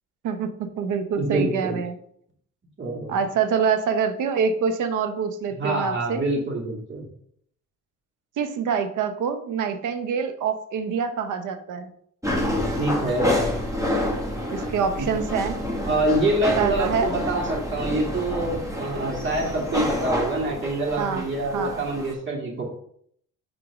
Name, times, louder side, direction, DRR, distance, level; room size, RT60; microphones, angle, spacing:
voice 1, 0.2-2.0 3.1-6.2 8.4-11.9 14.5-15.6 16.6-17.1 21.0-21.3 21.5-21.8, right 6 dB, 85° right, 8 dB, 0.9 m, -25 dB
voice 2, 1.2-1.8 2.8-3.2 5.6-7.1 12.8-13.3 15.0-15.1 15.8-22.7, right 2 dB, 40° right, -2 dB, 2.6 m, -26 dB
sound 1, 12.2-22.1, left 1 dB, 10° right, 1.6 m, -28 dB
6.3 x 3.8 x 4.9 m, 0.67 s
cardioid pair, 90°, 30 cm